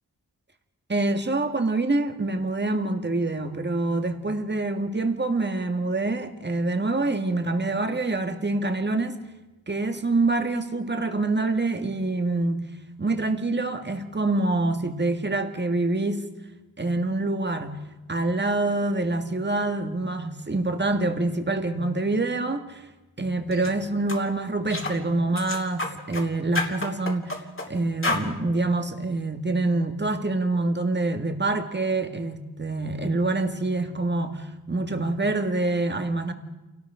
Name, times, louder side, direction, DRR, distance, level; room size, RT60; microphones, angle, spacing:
voice 1, 0.9-9.2 9.7-12.6 13.0-16.3 16.8-17.8 18.1-22.9 23.2-27.4 27.7-36.3, right 2 dB, 30° right, 1.9 m, -26 dB
sound 1, 23.5-23.7 24.1-24.2 24.7-25.0 25.4-26.3 26.6-27.7 28.0-28.3, left 2 dB, 35° left, 3.0 m, -29 dB
28.5 x 18.5 x 5.0 m
wide cardioid pair, 75°, 38 cm